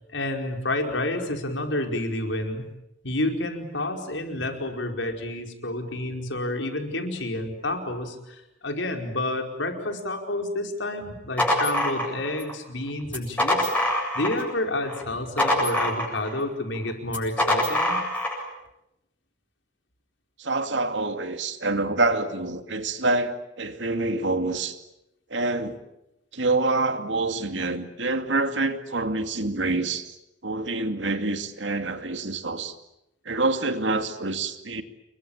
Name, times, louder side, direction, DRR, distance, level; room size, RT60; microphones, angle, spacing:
voice 1, 0.1-2.6 3.0-13.7 14.1-18.0, left 1 dB, 85° left, 3 dB, 4.9 m, -29 dB
sound 1, 11.1-12.5 13.1-14.5 14.9-16.4 17.1-18.4, left 1 dB, 10° left, 7.9 m, -25 dB
voice 2, 20.4-24.8 25.3-25.8 26.3-30.1 30.4-32.7 33.3-34.8, right 2 dB, 80° right, 7 dB, 2.4 m, -26 dB
29.0 x 22.5 x 8.8 m, 0.87 s
head